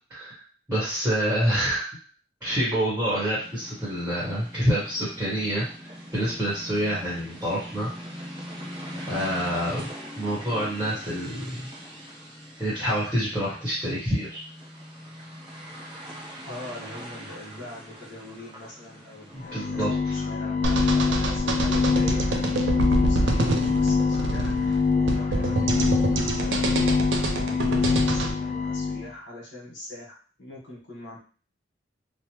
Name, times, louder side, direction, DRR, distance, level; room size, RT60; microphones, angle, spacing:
voice 1, 0.7-1.9 2.4-7.9 9.0-11.7 12.6-14.4 19.3-20.1, equal, 10° right, -8 dB, 1.0 m, -27 dB
sound 1, 3.4-19.9, equal, 25° right, 0.6 m, -42 dB
voice 2, 16.4-31.2, left 2 dB, 70° left, -5 dB, 1.2 m, -42 dB
sound 2, 19.4-29.1, left 4 dB, 40° left, 0.3 m, -25 dB
sound 3, 20.6-28.3, right 2 dB, 70° right, 0.4 m, -26 dB
3.1 x 2.0 x 2.9 m, 0.40 s
head